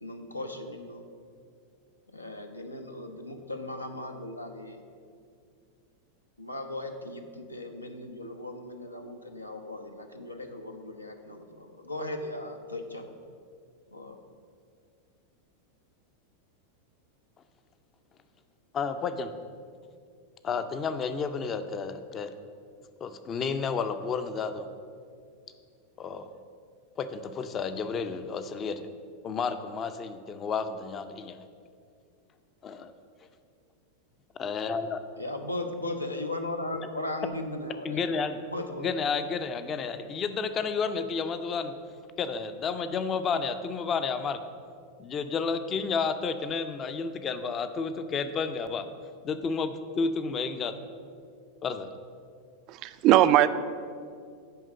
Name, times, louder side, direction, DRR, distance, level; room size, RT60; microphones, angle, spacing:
voice 1, 0.0-1.0 2.1-4.8 6.4-13.1 13.9-14.2 35.2-38.2 38.5-38.9, left 1 dB, 85° left, 5 dB, 0.7 m, -37 dB
voice 2, 18.7-19.3 20.4-22.3 23.0-24.7 26.0-26.4 27.0-28.9 29.2-31.4 32.6-32.9 34.4-35.0 37.8-38.4 38.8-41.7 42.2-44.4 45.0-48.8 49.2-50.7 51.6-51.9, left 5 dB, 25° left, 10 dB, 0.5 m, -31 dB
voice 3, 52.7-53.5, right 13 dB, 40° right, 13 dB, 0.3 m, -20 dB
10.0 x 3.6 x 6.5 m, 2.3 s
figure-of-eight pair, 90°, 0 cm